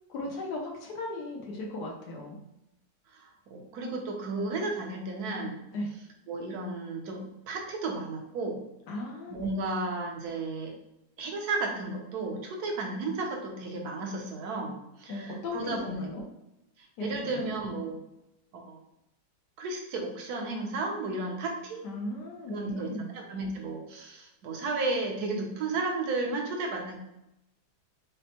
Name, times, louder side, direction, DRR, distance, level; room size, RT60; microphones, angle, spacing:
voice 1, 0.1-2.4 5.7-5.9 8.9-9.5 15.1-16.2 17.0-17.5 21.8-23.1, left 2 dB, 80° left, -1 dB, 1.3 m, -36 dB
voice 2, 3.1-5.6 6.3-8.6 9.3-10.7 11.2-16.1 17.0-18.0 18.5-18.8 19.6-21.8 22.5-22.9 23.1-27.0, right 3 dB, 70° right, 1 dB, 1.2 m, -33 dB
5.3 x 2.1 x 2.8 m, 0.88 s
omnidirectional pair, 1.7 m